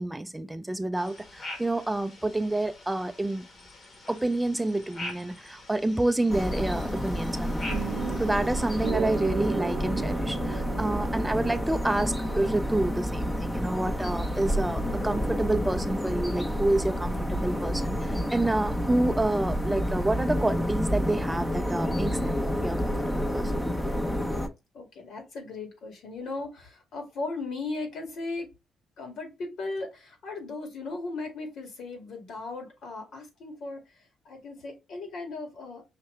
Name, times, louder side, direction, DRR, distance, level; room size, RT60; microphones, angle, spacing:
voice 1, 0.0-3.5 4.1-7.7 8.2-23.5, right 2 dB, 10° right, 0.4 m, -28 dB
sound 1, 0.9-8.9, left 1 dB, 50° left, 1.7 m, -44 dB
sound 2, 6.3-24.5, equal, 15° left, 0.9 m, -29 dB
sound 3, 7.7-12.8, right 9 dB, 80° right, 0.4 m, -36 dB
voice 2, 24.7-28.5 29.0-35.8, left 3 dB, 70° left, 2.1 m, -37 dB
5.7 x 2.8 x 3.2 m
cardioid pair, 90°, 0 cm